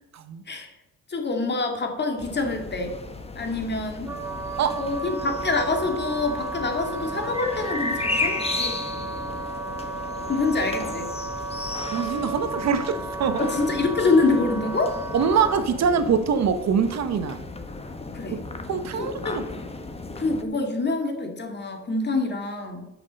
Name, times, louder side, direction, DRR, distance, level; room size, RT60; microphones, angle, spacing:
voice 1, 1.1-3.0 3.4-4.1 4.8-8.8 10.3-11.1 13.4-15.0 18.1-18.4 19.0-19.4 20.2-22.9, left 3 dB, 35° left, 3 dB, 2.2 m, -26 dB
sound 1, 2.2-20.4, left 2 dB, 20° left, 1.2 m, -34 dB
Wind instrument woodwind instrument, 4.0-15.6, right 3 dB, 10° right, 1.4 m, -34 dB
voice 2, 11.9-13.5 15.1-17.4 18.3-18.4 18.7-19.4, right 6 dB, 60° right, 10 dB, 1.0 m, -24 dB
11.0 x 6.1 x 5.3 m, 1.0 s
cardioid pair, 90°, 30 cm